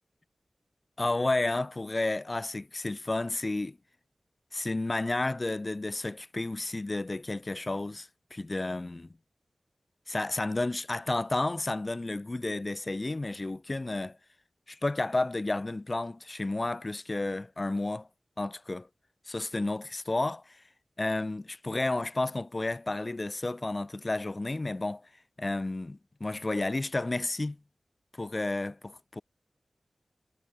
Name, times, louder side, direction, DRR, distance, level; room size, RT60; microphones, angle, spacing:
voice 1, 1.0-3.8 4.5-9.1 10.1-14.2 14.7-18.1 18.4-18.9 19.3-20.6 21.0-25.0 25.4-27.6 28.1-29.2, left 2 dB, 35° left, 4.2 m, -31 dB
wide cardioid pair, 85°, 0 cm